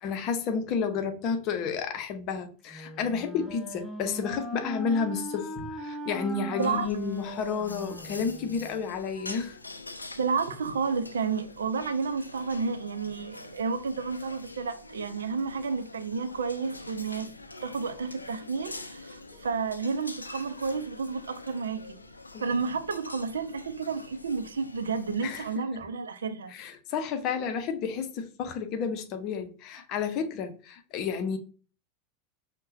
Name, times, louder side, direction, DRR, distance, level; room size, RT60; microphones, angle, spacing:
voice 1, 0.0-9.6 19.3-19.4 22.3-22.5 25.2-25.7 26.5-31.4, left 6 dB, 40° left, 0.7 m, -31 dB
Wind instrument woodwind instrument, 2.7-8.8, equal, 5° left, 0.9 m, -39 dB
sound 1, 6.6-25.6, left 2 dB, 85° left, 0.3 m, -45 dB
voice 2, 10.2-17.3 17.6-21.8 22.4-26.5, right 5 dB, 70° right, 0.4 m, -31 dB
5.3 x 2.2 x 2.6 m
figure-of-eight pair, 85°, 0 cm